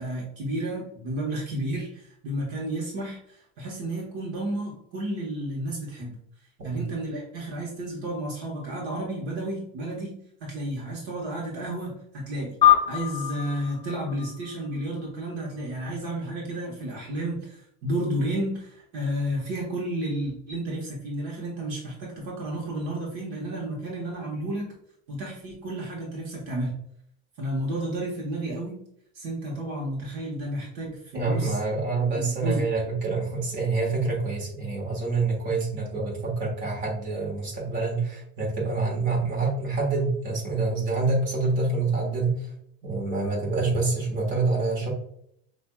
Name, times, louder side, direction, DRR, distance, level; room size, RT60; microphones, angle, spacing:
voice 1, 0.0-6.1 6.6-10.1 10.4-12.5 12.9-24.7 25.1-26.8 27.4-28.8 29.1-31.6 32.0-32.6, right 1 dB, 60° right, -2 dB, 1.3 m, -32 dB
sound 1, 12.6-15.3, left 11 dB, 20° left, 0.5 m, -24 dB
voice 2, 31.1-42.5 42.8-44.9, right 3 dB, 35° right, -3 dB, 1.5 m, -26 dB
5.8 x 2.6 x 2.2 m, 0.71 s
cardioid pair, 155°, 32 cm